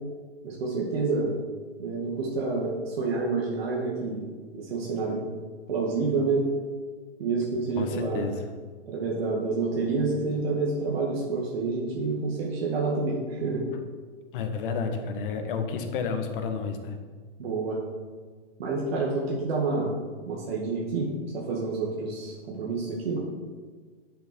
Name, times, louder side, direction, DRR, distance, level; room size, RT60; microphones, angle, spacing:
voice 1, 0.4-1.3 1.8-4.3 4.5-5.2 5.7-6.5 7.2-8.3 8.9-13.7 17.4-17.8 18.6-19.9 20.3-23.2, right 3 dB, 75° right, -4 dB, 2.2 m, -28 dB
voice 2, 7.8-8.4 14.3-17.0, left 5 dB, 60° left, 6 dB, 1.6 m, -31 dB
10.5 x 6.8 x 4.6 m, 1.5 s
hypercardioid pair, 125°, 30 cm